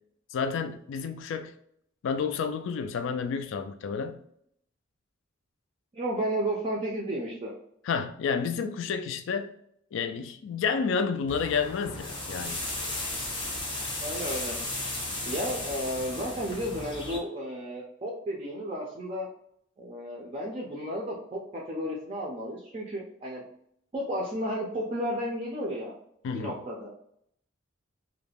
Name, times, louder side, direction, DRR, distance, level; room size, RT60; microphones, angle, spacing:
voice 1, 0.3-1.5 2.0-4.2 7.8-9.5 9.9-12.6 26.2-26.6, left 5 dB, 65° left, 0.3 m, -30 dB
voice 2, 5.9-7.5 14.0-14.6 15.2-19.3 19.8-23.4 23.9-25.9 26.3-26.9, equal, 30° right, 0.4 m, -33 dB
sound 1, 11.3-17.2, left 2 dB, 25° left, 0.6 m, -35 dB
2.3 x 2.1 x 3.3 m
head